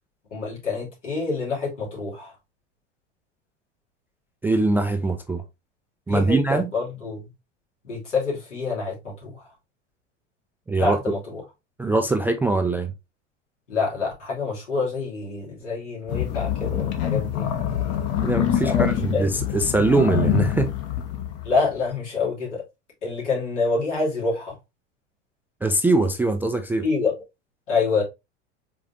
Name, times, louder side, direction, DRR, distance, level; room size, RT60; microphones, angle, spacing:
voice 1, 0.3-2.3 6.1-7.3 7.8-9.5 10.8-11.4 13.7-17.5 18.6-19.2 21.4-22.6 23.0-24.6 26.8-27.1 27.7-28.0, left 4 dB, 75° left, 2.9 m, -27 dB
voice 2, 4.4-5.4 6.1-6.7 10.7-11.0 11.8-12.9 18.2-20.7 25.6-26.8, right 2 dB, 5° right, 0.3 m, -22 dB
sound 1, 16.1-21.7, left 10 dB, 40° left, 1.2 m, -25 dB
4.8 x 3.8 x 2.6 m
figure-of-eight pair, 85°, 36 cm